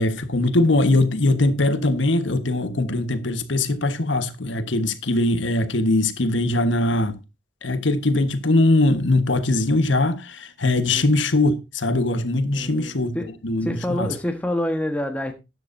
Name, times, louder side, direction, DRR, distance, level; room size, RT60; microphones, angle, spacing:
voice 1, 0.0-7.2 7.6-13.1 13.4-14.1, left 2 dB, 75° left, 1.4 m, -21 dB
voice 2, 12.5-13.3 13.6-15.3, left 1 dB, 10° left, 1.4 m, -27 dB
13.5 x 10.5 x 2.7 m
head